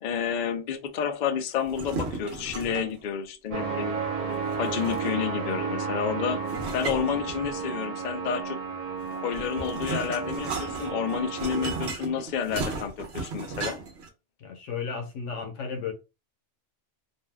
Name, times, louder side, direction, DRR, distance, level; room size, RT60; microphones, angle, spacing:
voice 1, 0.0-4.0 4.6-6.4 6.7-8.6 9.2-13.8, left 7 dB, 60° left, 0.5 m, -30 dB
sound 1, 1.6-3.0 4.4-5.4 6.5-7.8 9.0-14.1, right 4 dB, 65° right, 1.0 m, -35 dB
sound 2, 3.5-11.9, right 5 dB, 50° right, 0.4 m, -32 dB
voice 2, 14.4-15.9, left 5 dB, 85° left, 1.1 m, -34 dB
2.7 x 2.2 x 3.2 m
omnidirectional pair, 1.2 m